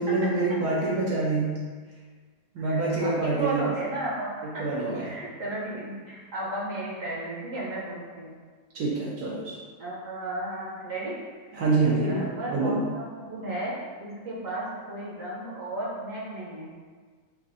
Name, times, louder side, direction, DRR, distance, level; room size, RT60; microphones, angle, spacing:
voice 1, 0.0-1.6 2.5-3.7 4.6-5.1 8.7-9.6 11.5-12.8, right 3 dB, 80° right, -6 dB, 1.2 m, -26 dB
voice 2, 2.6-8.4 9.8-11.1 12.0-16.7, right 2 dB, 60° right, -5 dB, 1.2 m, -34 dB
5.8 x 2.5 x 2.5 m, 1.5 s
omnidirectional pair, 1.6 m